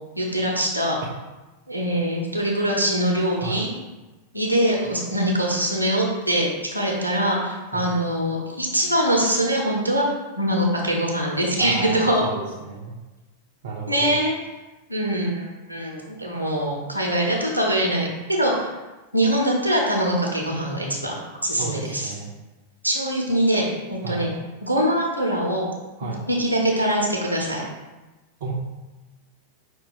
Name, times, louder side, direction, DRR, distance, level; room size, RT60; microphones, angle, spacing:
voice 1, 0.2-1.0 1.7-3.7 4.3-10.0 10.4-12.2 13.9-14.3 14.9-18.7 19.1-21.1 21.4-22.1 22.8-24.3 24.6-25.7 26.3-27.6, right 1 dB, 90° right, -1 dB, 0.7 m, -23 dB
voice 2, 11.6-13.0 13.6-14.2 21.5-22.3 24.0-24.3 26.0-26.3 28.4-28.5, right 4 dB, 55° right, -3 dB, 0.5 m, -32 dB
5.2 x 2.3 x 3.9 m, 1.1 s
figure-of-eight pair, 90°, 0 cm